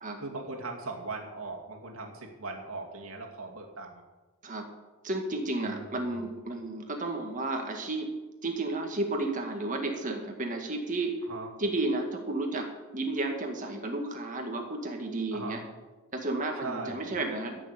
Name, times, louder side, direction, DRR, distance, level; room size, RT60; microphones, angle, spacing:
voice 1, 0.2-4.0 5.6-6.3 11.3-11.5 15.3-15.6 16.6-17.1, right 3 dB, 70° right, 1 dB, 2.4 m, -39 dB
voice 2, 5.0-8.2 8.4-11.2 11.6-15.6 16.1-17.6, right 2 dB, 35° right, 3 dB, 2.0 m, -32 dB
14.0 x 6.9 x 8.2 m, 1.2 s
head